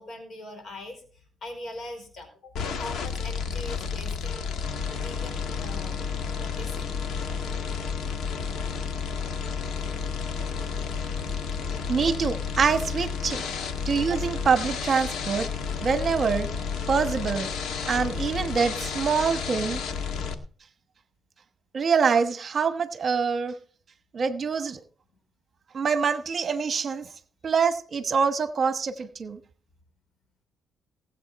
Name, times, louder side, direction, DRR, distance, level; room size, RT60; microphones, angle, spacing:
voice 1, 0.0-6.9 7.7-7.8, left 1 dB, 55° left, 5 dB, 4.7 m, -42 dB
sound 1, 2.6-20.3, left 5 dB, 75° left, 1.8 m, -31 dB
voice 2, 11.9-13.4 13.9-15.5 15.8-16.5 16.9-17.5 17.8-19.8 21.7-23.5 24.1-24.8 25.7-27.1 27.4-29.4, right 5 dB, 45° right, 10 dB, 1.1 m, -25 dB
19.0 x 7.9 x 4.2 m, 0.42 s
cardioid pair, 90°, 0 cm